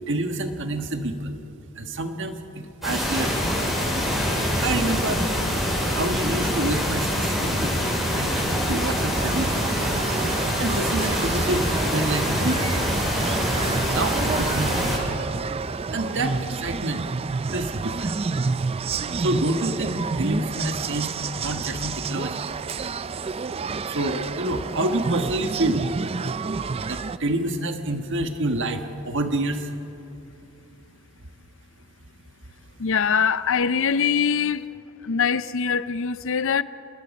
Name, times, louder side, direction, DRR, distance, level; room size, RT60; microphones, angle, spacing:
voice 1, 0.1-1.4 1.7-3.3 4.6-5.2 5.9-7.8 8.1-9.8 10.2-12.8 13.9-15.2 15.9-17.0 17.5-18.2 19.2-22.5 23.9-25.9 26.9-29.7, right 2 dB, 55° right, 1.5 m, -28 dB
sound 1, 2.8-15.0, equal, ahead, 6.3 m, -25 dB
sound 2, 9.1-27.2, right 4 dB, 25° right, 0.4 m, -29 dB
voice 2, 32.8-34.6 35.0-36.6, left 6 dB, 60° left, 0.6 m, -23 dB
26.5 x 20.0 x 5.3 m
head